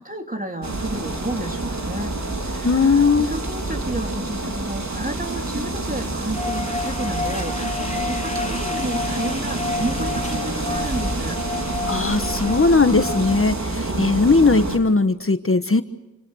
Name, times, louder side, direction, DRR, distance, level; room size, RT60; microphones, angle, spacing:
voice 1, 0.0-11.4, right 1 dB, 25° right, 3 dB, 3.7 m, -32 dB
sound 1, 0.6-14.8, right 2 dB, 65° right, 4.3 m, -27 dB
voice 2, 2.6-3.3 11.9-15.8, left 4 dB, 45° left, 9 dB, 1.4 m, -18 dB
sound 2, 6.3-13.4, left 4 dB, 25° left, 1.8 m, -31 dB
28.5 x 27.0 x 6.4 m, 1.0 s
wide cardioid pair, 70°, 30 cm